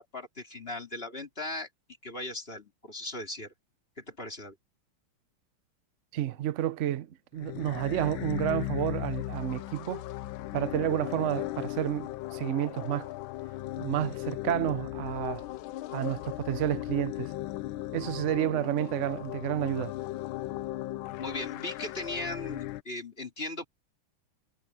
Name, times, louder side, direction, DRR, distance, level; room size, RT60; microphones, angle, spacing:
voice 1, 0.0-1.7 2.0-3.5 4.0-4.5 21.2-23.6, left 2 dB, 25° left, 3.5 m, -38 dB
voice 2, 6.1-7.1 7.3-10.0 10.5-13.1 13.8-15.4 15.9-17.3 17.9-19.9, right 12 dB, 75° right, 0.6 m, -30 dB
sound 1, 7.4-22.8, left 16 dB, 75° left, 1.3 m, -37 dB
omnidirectional pair, 2.4 m